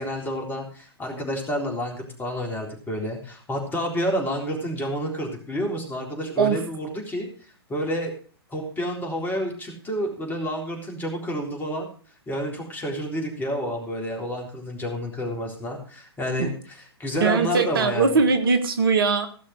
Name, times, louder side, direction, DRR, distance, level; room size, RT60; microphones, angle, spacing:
voice 1, 0.0-8.1 8.5-11.9 12.3-18.2, equal, 15° left, 1 dB, 3.7 m, -29 dB
voice 2, 17.2-19.3, right 5 dB, 60° right, 8 dB, 1.6 m, -21 dB
16.5 x 6.4 x 6.4 m, 0.42 s
figure-of-eight pair, 115°, 13 cm